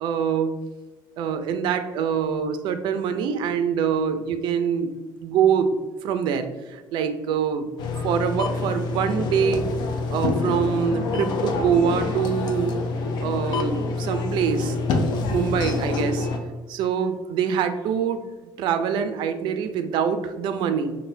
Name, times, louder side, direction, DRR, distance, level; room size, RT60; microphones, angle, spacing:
voice 1, 0.0-0.5 1.2-4.9 5.2-5.8 6.0-7.7 8.0-9.7 10.1-12.8 13.2-14.8 15.3-16.3 16.7-18.2 18.6-21.0, right 7 dB, 70° right, 8 dB, 0.4 m, -24 dB
sound 1, 7.8-16.4, left 3 dB, 60° left, 0.4 m, -26 dB
4.0 x 2.2 x 2.6 m, 1.2 s
cardioid pair, 140°, 8 cm